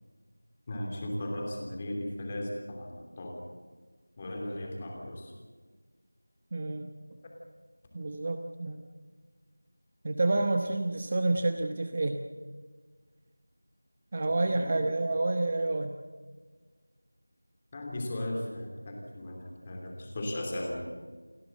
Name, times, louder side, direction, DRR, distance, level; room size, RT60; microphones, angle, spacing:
voice 1, 0.7-3.4 4.2-5.3 14.4-14.8 17.7-20.8, left 1 dB, 15° left, 0 dB, 3.0 m, -36 dB
voice 2, 6.5-6.9 7.9-8.8 10.0-12.2 14.1-15.9, right 2 dB, 25° right, 6 dB, 0.9 m, -29 dB
29.5 x 12.5 x 7.8 m, 1.4 s
figure-of-eight pair, 175°, 0 cm